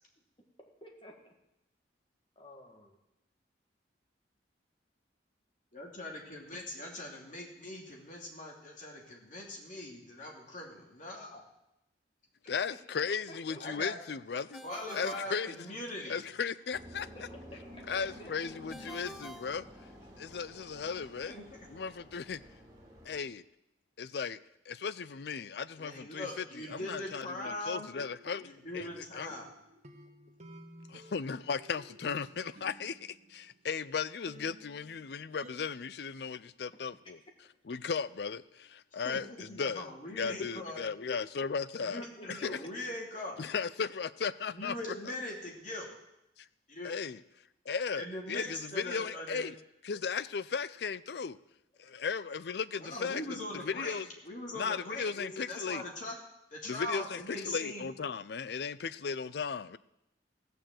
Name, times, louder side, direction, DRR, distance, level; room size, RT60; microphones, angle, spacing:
voice 1, 0.8-1.3 2.4-3.0 13.3-13.8 17.3-18.3 18.8-18.9 42.0-42.5 51.8-52.2, equal, 30° left, 2 dB, 1.9 m, -52 dB
voice 2, 5.7-11.4 13.6-14.0 14.6-16.2 21.3-21.4 25.8-27.9 28.4-29.5 39.0-40.8 41.8-43.4 44.5-45.9 46.7-46.9 47.9-49.4 52.8-54.0 54.2-56.2 56.5-57.9, left 1 dB, 45° left, -1 dB, 2.7 m, -41 dB
voice 3, 12.5-14.6 14.9-15.5 16.1-17.1 17.9-19.7 20.2-21.4 21.7-22.4 23.1-23.4 24.0-24.4 24.7-26.3 26.7-28.9 29.2-29.3 30.9-37.2 37.7-42.0 42.3-42.6 43.4-44.8 46.8-47.2 47.7-49.6 49.8-51.4 51.8-53.2 53.6-54.1 54.6-55.8 56.7-59.8, left 6 dB, 60° left, 16 dB, 0.4 m, -36 dB
Ringtone, 14.5-16.2 18.7-20.4, equal, ahead, 0.7 m, -50 dB
sound 1, 16.7-23.2, equal, 20° right, 3.4 m, -51 dB
sound 2, 26.7-33.8 34.3-35.6, right 1 dB, 35° right, 1.1 m, -55 dB
16.0 x 6.8 x 7.6 m, 0.85 s
head